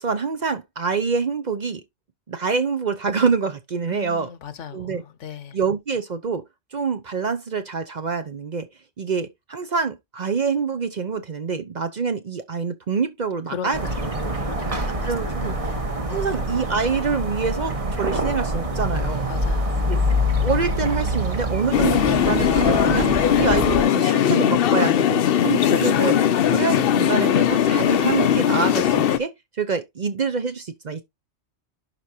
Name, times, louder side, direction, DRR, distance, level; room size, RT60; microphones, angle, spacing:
voice 1, 0.0-1.8 2.3-4.3 4.7-5.0 5.5-6.4 6.7-8.7 9.0-13.8 15.0-15.5 16.1-19.3 19.8-20.0 20.4-29.3 29.6-31.1, right 5 dB, 45° right, 0.7 m, -26 dB
voice 2, 3.9-5.6 13.5-15.6 16.1-16.3 19.3-19.9 25.3-25.8, left 7 dB, 85° left, 1.2 m, -38 dB
sound 1, 13.7-23.8, equal, 30° right, 1.2 m, -25 dB
sound 2, 21.7-29.2, left 9 dB, 60° left, 0.7 m, -19 dB
11.0 x 4.6 x 2.7 m
omnidirectional pair, 1.2 m